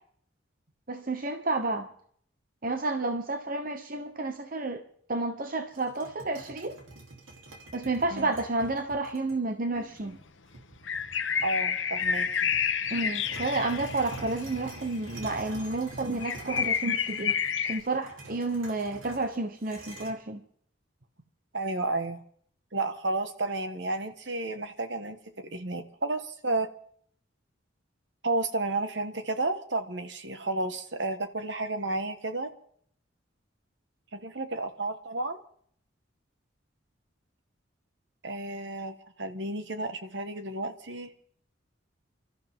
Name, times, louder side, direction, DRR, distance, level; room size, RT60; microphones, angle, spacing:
voice 1, 0.9-1.9 2.6-4.8 5.1-6.8 7.7-10.2 12.9-17.4 17.6-20.4, right 2 dB, 45° right, 6 dB, 1.0 m, -31 dB
sound 1, 5.7-9.4 10.0-10.1 10.5-11.7 12.0-20.1, right 2 dB, 90° right, 3.3 m, -46 dB
sound 2, 9.8-9.9 10.6-15.0 15.3-15.4 15.6-15.7 15.9-17.8, left 7 dB, 70° left, 1.0 m, -29 dB
voice 2, 11.4-12.5 21.5-22.2 22.7-26.7 28.2-32.5 34.1-35.4 38.2-41.1, right 2 dB, 60° right, 8 dB, 1.5 m, -32 dB
29.5 x 13.0 x 3.7 m, 0.62 s
head